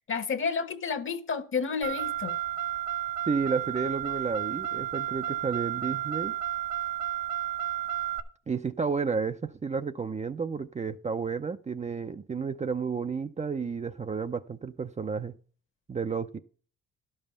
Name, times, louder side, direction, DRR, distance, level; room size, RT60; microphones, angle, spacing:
voice 1, 0.1-2.4, left 5 dB, 40° left, 1.2 m, -30 dB
Car, 1.8-8.2, right 12 dB, 80° right, 1.1 m, -32 dB
voice 2, 3.3-6.3 8.5-15.4 15.9-16.4, right 5 dB, 25° right, 0.5 m, -31 dB
11.5 x 5.6 x 6.9 m
cardioid pair, 90°, 30 cm